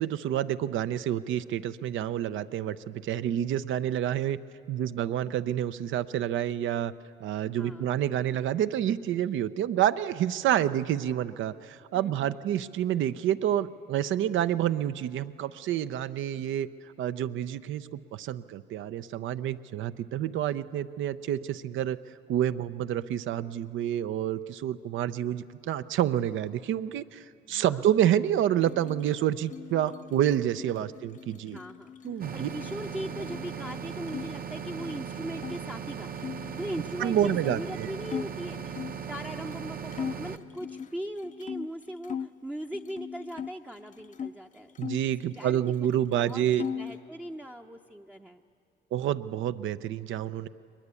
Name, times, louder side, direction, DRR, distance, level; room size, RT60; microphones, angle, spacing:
voice 1, 0.0-4.4 4.7-6.9 7.2-16.7 17.0-22.0 22.3-31.6 32.0-32.5 37.0-37.9 44.8-46.6 48.9-50.5, right 11 dB, 75° right, 13 dB, 0.6 m, -28 dB
voice 2, 7.5-7.9 11.9-12.6 27.5-27.9 31.4-38.8 39.1-44.9 45.4-48.4, right 1 dB, 5° right, 2 dB, 0.6 m, -40 dB
sound 1, 28.5-34.3 34.6-35.6 36.2-39.0 39.5-39.6 39.9-42.3 42.7-44.4 44.7-45.9 46.1-47.0, left 7 dB, 40° left, 0.6 m, -40 dB
sound 2, 32.2-40.4, right 7 dB, 50° right, 0.9 m, -38 dB
22.0 x 20.5 x 8.3 m, 2.7 s
cardioid pair, 90°, 20 cm